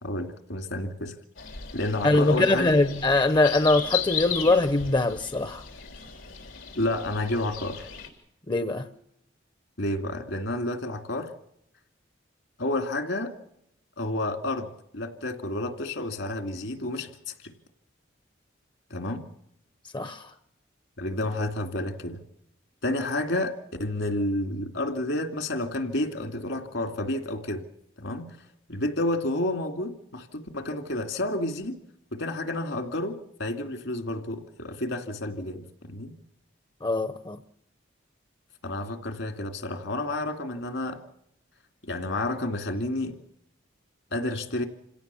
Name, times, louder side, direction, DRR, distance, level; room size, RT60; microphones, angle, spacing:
voice 1, 0.0-1.1 1.7-2.8 6.8-7.9 9.8-11.3 12.6-13.3 14.0-17.5 18.9-19.2 21.0-22.2 22.8-27.6 28.0-28.4 28.7-31.8 32.1-36.1 38.6-41.0 41.8-43.2 44.1-44.6, left 1 dB, 70° left, 7 dB, 2.6 m, -30 dB
sound 1, 1.4-8.1, left 8 dB, 90° left, 3.8 m, -36 dB
voice 2, 2.0-5.6 8.5-8.9 19.9-20.3 36.8-37.4, left 2 dB, 25° left, 11 dB, 0.7 m, -22 dB
27.0 x 17.0 x 7.0 m, 0.79 s
head